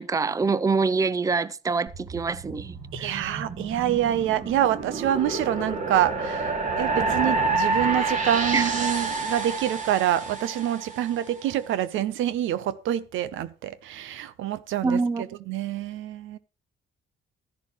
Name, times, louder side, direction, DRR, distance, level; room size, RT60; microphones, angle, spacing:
voice 1, 0.0-3.4 8.5-8.7 14.8-15.3, right 4 dB, 15° right, 0.5 m, -26 dB
sound 1, 1.9-11.2, right 3 dB, 40° right, 2.8 m, -29 dB
voice 2, 2.9-15.0 15.5-16.4, right 11 dB, 85° right, 0.8 m, -26 dB
13.0 x 10.5 x 3.1 m
cardioid pair, 90°, 20 cm